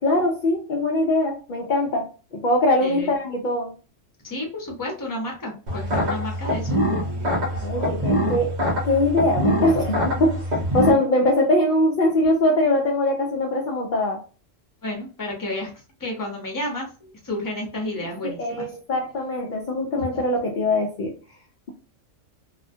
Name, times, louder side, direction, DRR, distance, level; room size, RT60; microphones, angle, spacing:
voice 1, 0.0-3.7 7.6-8.6 8.8-14.2 18.2-21.2, left 1 dB, 70° left, -1 dB, 0.4 m, -22 dB
voice 2, 4.2-6.8 14.8-15.7 16.0-18.7 20.0-20.2, left 1 dB, 20° left, 0 dB, 0.6 m, -31 dB
sound 1, 5.7-10.9, equal, 45° right, 0.6 m, -24 dB
2.3 x 2.1 x 2.6 m, 0.35 s
omnidirectional pair, 1.3 m